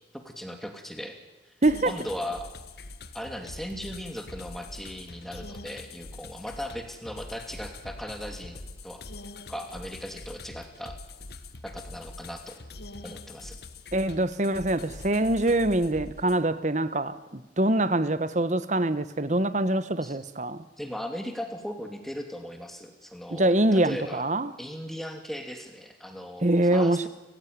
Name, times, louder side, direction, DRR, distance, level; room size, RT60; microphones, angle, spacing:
voice 1, 0.1-1.2 1.4-1.5 1.8-2.5 3.1-9.0 9.5-11.0 11.6-12.5 13.0-13.6 20.0-20.2 20.8-24.2 24.6-27.1, equal, ahead, 2.7 m, -38 dB
sound 1, 1.6-16.4, left 2 dB, 55° left, 1.5 m, -44 dB
voice 2, 13.9-20.6 23.3-24.5 26.4-27.1, right 1 dB, 40° right, 1.1 m, -24 dB
29.0 x 15.5 x 9.6 m
head